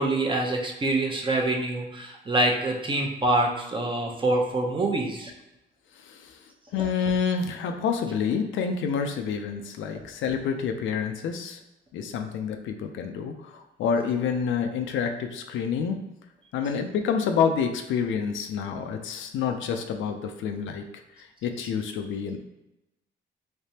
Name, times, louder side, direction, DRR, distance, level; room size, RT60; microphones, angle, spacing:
voice 1, 0.0-5.3, right 2 dB, 25° right, 1 dB, 0.7 m, -25 dB
voice 2, 6.7-11.6 11.9-16.0 16.5-20.8 21.4-22.4, left 6 dB, 75° left, 6 dB, 0.4 m, -28 dB
3.3 x 3.2 x 2.8 m, 0.92 s
cardioid pair, 90°, 20 cm